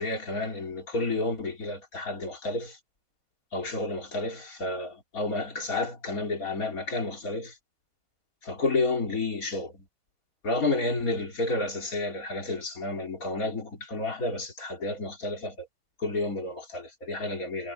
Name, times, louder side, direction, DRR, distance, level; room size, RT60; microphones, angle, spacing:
voice 1, 0.0-2.8 3.5-7.5 8.4-9.9 10.4-15.7 16.0-17.7, left 2 dB, 50° left, 4.0 m, -31 dB
omnidirectional pair, 1.9 m